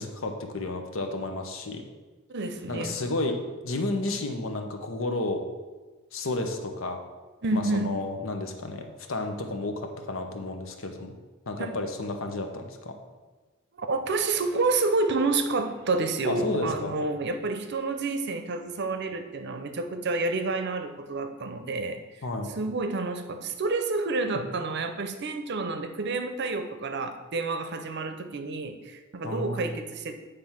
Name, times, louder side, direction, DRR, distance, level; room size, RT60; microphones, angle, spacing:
voice 1, 0.0-1.8 2.7-3.4 3.6-5.4 6.1-7.0 7.5-8.8 9.1-11.1 11.5-12.9 16.2-16.9 22.2-22.5 29.2-29.7, left 2 dB, 70° left, 5 dB, 0.9 m, -31 dB
voice 2, 2.3-3.0 7.4-8.0 11.6-11.7 13.7-22.0 22.5-30.2, right 3 dB, 55° right, 7 dB, 0.7 m, -29 dB
9.0 x 3.4 x 5.8 m, 1.3 s
head